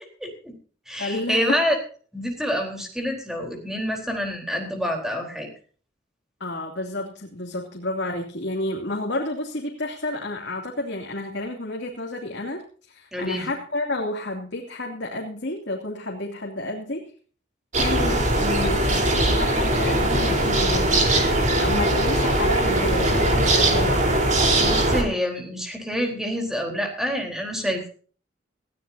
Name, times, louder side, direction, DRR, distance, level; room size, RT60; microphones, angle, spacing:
voice 1, 0.2-0.5 0.9-1.8 2.1-5.5 13.1-13.5 24.6-27.9, equal, 5° right, 2 dB, 4.1 m, -27 dB
voice 2, 1.0-1.6 6.4-17.1 17.7-24.2, left 2 dB, 65° left, -1 dB, 2.8 m, -30 dB
sound 1, 17.7-25.0, right 1 dB, 40° right, 4.1 m, -20 dB
19.5 x 15.5 x 2.8 m, 0.42 s
head